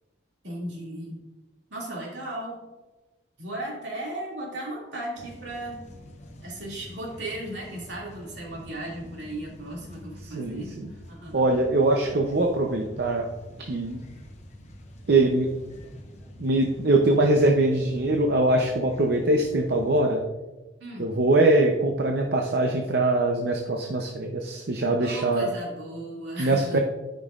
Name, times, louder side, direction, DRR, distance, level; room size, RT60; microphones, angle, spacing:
voice 1, 0.4-1.2 1.7-2.6 3.4-5.8 6.4-11.4 20.8-21.1 25.0-26.8, right 1 dB, 75° right, -3 dB, 2.4 m, -36 dB
sound 1, 5.2-20.0, equal, 35° left, 0.9 m, -46 dB
voice 2, 10.3-10.9 11.3-13.3 13.6-14.0 15.1-15.5 16.4-20.2 21.0-25.5 26.4-26.8, right 2 dB, 60° right, 2 dB, 0.6 m, -22 dB
13.0 x 5.4 x 2.4 m, 1.1 s
head